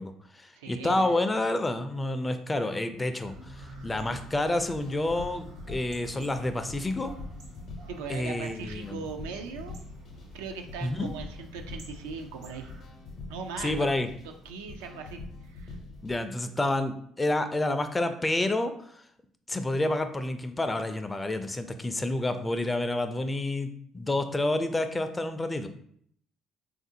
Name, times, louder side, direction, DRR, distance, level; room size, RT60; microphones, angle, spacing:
voice 1, 0.0-7.1 8.1-9.0 10.8-11.1 13.6-14.1 16.0-19.0 19.5-25.7, left 2 dB, 20° left, 9 dB, 0.4 m, -29 dB
voice 2, 0.6-1.1 7.9-9.8 10.3-12.7 13.3-13.9 14.4-15.8, right 5 dB, 85° right, 5 dB, 0.3 m, -39 dB
sound 1, 3.2-12.8, right 1 dB, 70° right, 0.8 m, -48 dB
sound 2, 3.8-16.2, left 3 dB, 60° left, 0.6 m, -45 dB
3.5 x 2.5 x 2.7 m, 0.65 s
hypercardioid pair, 65°, 0 cm